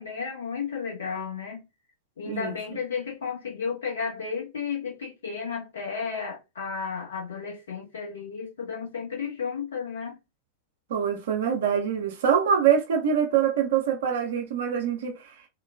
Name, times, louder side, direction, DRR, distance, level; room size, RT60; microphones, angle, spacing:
voice 1, 0.0-1.6 2.2-10.2, left 6 dB, 65° left, 0.9 m, -33 dB
voice 2, 2.3-2.6 10.9-15.3, right 8 dB, 60° right, 0.6 m, -24 dB
3.7 x 2.2 x 2.2 m
figure-of-eight pair, 90°, 0 cm